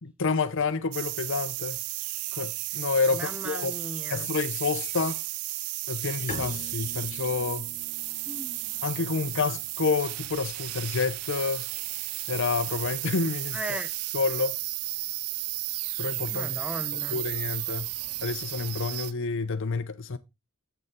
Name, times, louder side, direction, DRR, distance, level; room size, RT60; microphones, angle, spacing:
voice 1, 0.0-1.8 2.3-3.7 4.1-5.2 5.9-7.7 8.8-11.7 12.3-13.6 14.1-14.6 16.0-16.6 16.9-17.9 18.2-20.2, left 4 dB, 60° left, 0.7 m, -29 dB
sound 1, 0.9-19.1, right 19 dB, 85° right, 0.4 m, -34 dB
voice 2, 3.1-4.3 8.3-8.8 9.2-9.5 13.5-13.9 16.3-17.2, right 1 dB, 5° right, 0.7 m, -38 dB
Bowed string instrument, 6.3-11.9, left 1 dB, 35° left, 1.7 m, -45 dB
8.0 x 6.8 x 3.6 m
head